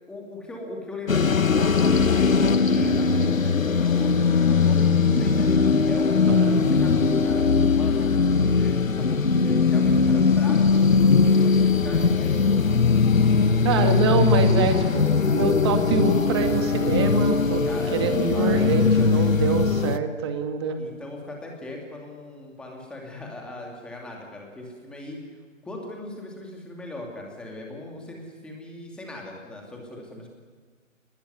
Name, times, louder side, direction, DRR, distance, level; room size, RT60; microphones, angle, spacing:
voice 1, 0.1-5.5 5.8-12.5 17.6-18.0 18.3-19.3 20.8-25.2 25.6-30.3, left 1 dB, ahead, 0 dB, 2.6 m, -39 dB
sound 1, 1.1-20.0, left 5 dB, 80° left, 1.6 m, -20 dB
voice 2, 13.6-17.6 17.9-20.8, right 5 dB, 20° right, 6 dB, 2.2 m, -25 dB
29.0 x 20.0 x 9.7 m, 1.5 s
figure-of-eight pair, 160°, 39 cm